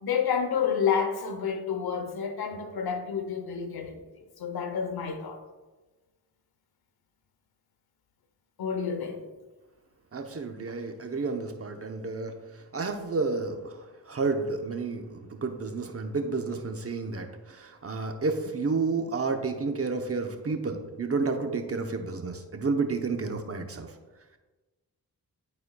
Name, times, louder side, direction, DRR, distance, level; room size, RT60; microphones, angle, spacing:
voice 1, 0.0-5.4 8.6-9.3, left 7 dB, 75° left, 0.9 m, -29 dB
voice 2, 10.1-13.8 14.1-23.9, right 4 dB, 40° right, 0.9 m, -31 dB
12.0 x 4.2 x 2.3 m
cardioid pair, 65°, 38 cm